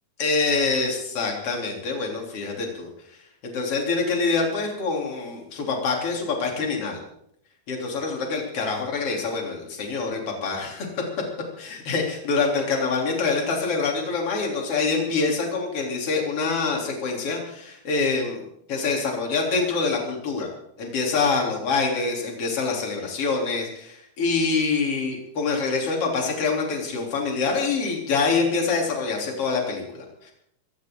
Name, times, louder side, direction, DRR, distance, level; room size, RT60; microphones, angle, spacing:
voice 1, 0.2-2.9 3.4-7.0 7.7-11.0 11.6-18.4 18.7-20.5 20.8-30.3, left 4 dB, 40° left, 0 dB, 3.9 m, -25 dB
24.0 x 15.5 x 3.8 m, 0.75 s
omnidirectional pair, 4.5 m